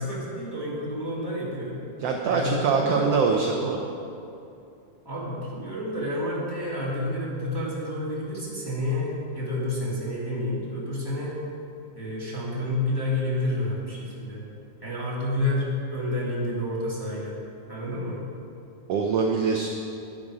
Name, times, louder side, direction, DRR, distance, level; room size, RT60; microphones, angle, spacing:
voice 1, 0.0-1.8 2.3-3.1 5.0-11.4 11.9-14.4 14.8-17.4 17.7-18.2, left 1 dB, 10° left, -7 dB, 1.9 m, -29 dB
voice 2, 2.0-3.9 18.9-19.7, right 5 dB, 75° right, 1 dB, 1.4 m, -24 dB
11.5 x 11.0 x 4.9 m, 2.6 s
omnidirectional pair, 3.7 m